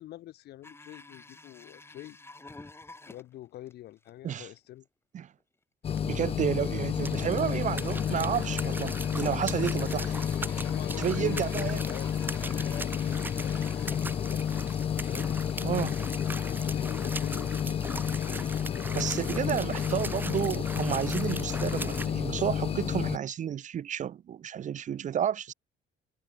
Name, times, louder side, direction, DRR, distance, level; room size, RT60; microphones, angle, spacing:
voice 1, 0.0-2.2 3.1-4.9 10.6-13.6 14.2-14.7 15.0-15.4 16.4-20.1, left 14 dB, 75° left, 6.1 m, -45 dB
sound 1, 0.6-3.7 4.0-4.1 4.6-4.7 5.4-5.5 7.3-14.7 14.9-15.0 15.7-15.8 16.4-16.5 17.0-17.9 18.4-18.8 20.1-20.2 20.4-20.5, left 2 dB, 15° left, 3.4 m, -51 dB
sound 2, 5.8-23.2, left 8 dB, 35° left, 0.6 m, -31 dB
sound 3, 5.9-22.1, right 2 dB, 10° right, 0.8 m, -41 dB
voice 2, 6.0-10.1 11.0-11.8 15.6-15.9 18.9-25.5, right 9 dB, 45° right, 1.2 m, -31 dB
cardioid pair, 110°, 17 cm